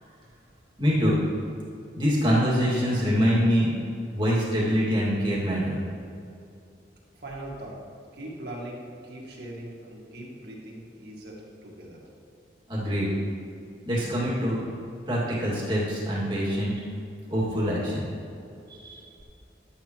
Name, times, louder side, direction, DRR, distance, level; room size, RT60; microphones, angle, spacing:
voice 1, 0.8-1.2 1.9-3.7 4.1-5.7 12.7-13.1 13.8-14.6 15.1-16.8 17.3-18.1 18.7-19.0, equal, 25° right, -7 dB, 2.1 m, -24 dB
voice 2, 7.2-7.8 8.1-12.0, right 1 dB, 60° right, -4 dB, 2.0 m, -40 dB
11.0 x 8.6 x 3.0 m, 2.5 s
head